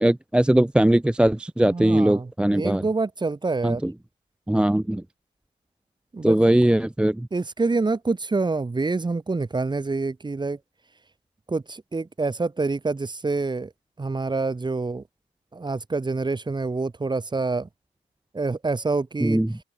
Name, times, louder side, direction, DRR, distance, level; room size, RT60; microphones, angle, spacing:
voice 1, 0.0-2.8 3.6-3.9 4.5-5.0 6.2-7.3 19.2-19.6, right 1 dB, 5° right, 0.5 m, -20 dB
voice 2, 1.7-3.8 6.1-6.4 7.3-10.6 11.5-13.7 14.0-15.0 15.5-17.7 18.3-19.4, right 3 dB, 20° right, 2.7 m, -26 dB
open air
cardioid pair, 90°, 20 cm